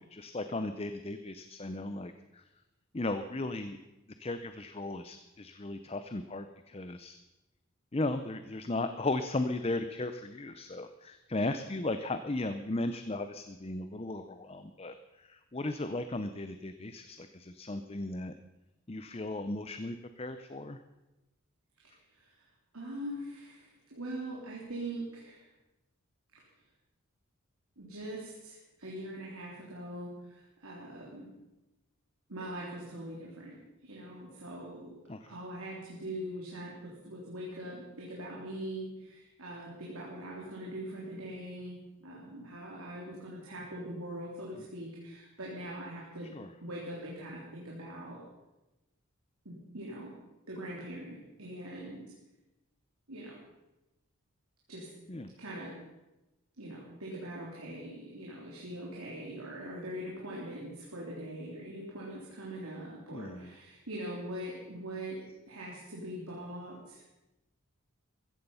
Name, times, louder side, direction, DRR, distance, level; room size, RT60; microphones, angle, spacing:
voice 1, 0.0-2.4 2.9-3.8 4.2-7.2 7.9-18.3 18.9-20.8 35.1-35.3 46.3-46.5 55.1-55.3 63.1-63.5, left 2 dB, 25° left, 9 dB, 0.6 m, -36 dB
voice 2, 21.8-22.4 22.7-25.5 26.3-26.4 27.8-31.3 32.3-33.6 33.8-34.9 35.3-46.3 46.6-48.2 49.5-50.2 50.5-52.0 53.1-53.4 54.7-54.9 55.4-55.8 56.6-67.2, right 1 dB, 85° right, -4 dB, 3.5 m, -42 dB
15.0 x 14.5 x 5.6 m, 1.0 s
head